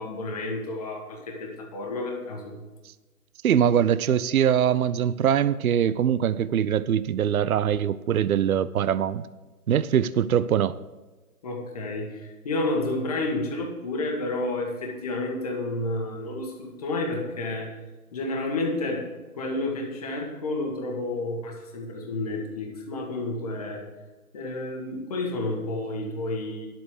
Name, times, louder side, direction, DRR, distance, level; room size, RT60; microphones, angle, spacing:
voice 1, 0.0-2.6 11.4-17.8 18.1-19.1 19.3-23.8 24.3-26.7, left 2 dB, 25° left, 1 dB, 1.4 m, -30 dB
voice 2, 3.4-9.3 9.7-10.8, right 9 dB, 65° right, 17 dB, 0.6 m, -22 dB
10.5 x 7.7 x 6.5 m, 1.2 s
hypercardioid pair, 170°, 46 cm